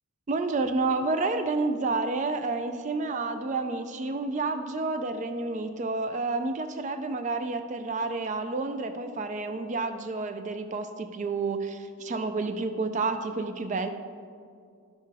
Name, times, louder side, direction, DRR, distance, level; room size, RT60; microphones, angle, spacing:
voice 1, 0.3-13.9, right 3 dB, 35° right, 8 dB, 0.3 m, -30 dB
11.0 x 6.7 x 3.4 m, 2.3 s
head